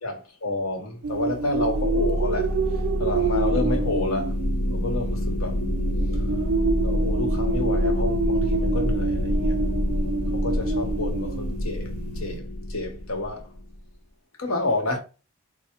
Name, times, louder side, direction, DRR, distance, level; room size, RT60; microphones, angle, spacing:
voice 1, 0.0-2.6 3.0-4.4 4.6-5.6 6.8-9.6 10.3-13.5 14.4-15.0, left 2 dB, 70° left, 1.1 m, -30 dB
sound 1, 1.0-12.4, right 3 dB, 70° right, 0.4 m, -28 dB
sound 2, 1.5-13.8, left 1 dB, 45° left, 0.6 m, -27 dB
4.6 x 2.1 x 4.3 m
head